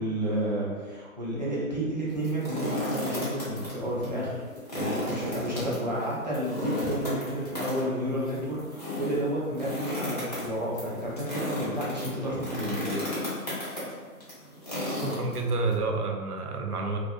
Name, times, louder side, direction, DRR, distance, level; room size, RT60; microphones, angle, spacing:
voice 1, 0.0-4.4 4.7-13.0, right 1 dB, 30° right, -7 dB, 0.5 m, -31 dB
sound 1, 2.1-3.7 4.0-4.1 4.5-15.7, left 1 dB, 30° left, 0.5 m, -34 dB
voice 2, 15.0-17.0, right 3 dB, 80° right, 2 dB, 0.6 m, -29 dB
2.5 x 2.4 x 2.4 m, 1.5 s
figure-of-eight pair, 135°, 45 cm